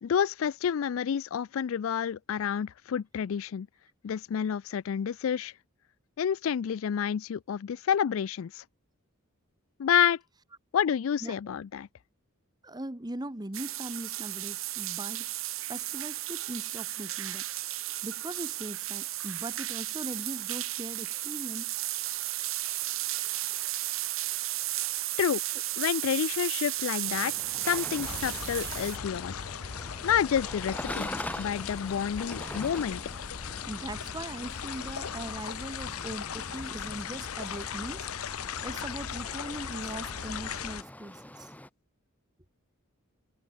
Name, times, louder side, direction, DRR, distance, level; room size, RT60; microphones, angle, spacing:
voice 1, 0.0-3.7 4.0-5.5 6.2-8.6 9.8-10.2 10.7-11.9 25.2-25.4 25.8-27.3 27.6-29.4 30.0-31.1 31.4-33.0, left 8 dB, 70° left, 0.4 m, -29 dB
voice 2, 12.6-15.4 15.7-17.5 18.0-21.8 33.7-38.1 38.6-41.5, right 1 dB, 20° right, 1.1 m, -40 dB
sound 1, 13.5-29.0, right 16 dB, 70° right, 1.7 m, -34 dB
sound 2, 27.0-41.7, left 1 dB, 5° left, 4.3 m, -44 dB
sound 3, 28.0-40.8, left 7 dB, 90° left, 0.8 m, -38 dB
head